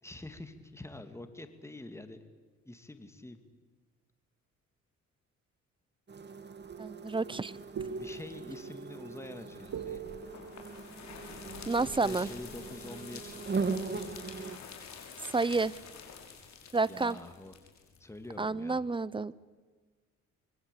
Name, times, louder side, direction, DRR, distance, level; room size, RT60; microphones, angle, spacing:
voice 1, 0.0-2.2 2.6-3.4 7.8-10.0 11.8-13.4 16.8-17.5 18.0-18.8, left 1 dB, 10° left, 9 dB, 2.4 m, -46 dB
sound 1, 6.1-14.6, right 4 dB, 35° right, 2.5 m, -40 dB
sound 2, 6.7-12.3, right 6 dB, 60° right, 1.8 m, -44 dB
voice 2, 6.8-7.5 11.7-12.3 15.3-15.7 16.7-17.2 18.4-19.3, right 3 dB, 15° right, 19 dB, 0.8 m, -30 dB
sound 3, 9.6-18.4, left 6 dB, 65° left, 6.3 m, -48 dB
25.5 x 23.0 x 8.4 m, 1.4 s
cardioid pair, 90°, 30 cm